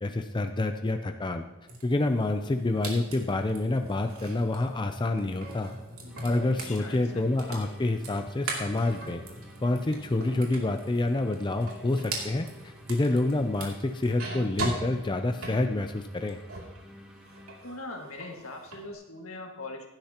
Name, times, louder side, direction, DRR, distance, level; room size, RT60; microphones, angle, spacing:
voice 1, 0.0-1.4 1.8-5.7 6.2-9.2 9.6-16.4, left 2 dB, 20° left, 6 dB, 0.5 m, -28 dB
sound 1, 1.7-16.8 17.1-18.8, right 2 dB, 85° right, 2.8 m, -40 dB
sound 2, 6.1-17.6, left 1 dB, 5° right, 1.4 m, -52 dB
voice 2, 6.7-7.3 17.6-19.9, left 2 dB, 75° left, 2 dB, 1.9 m, -41 dB
16.0 x 12.0 x 2.9 m, 1.0 s
head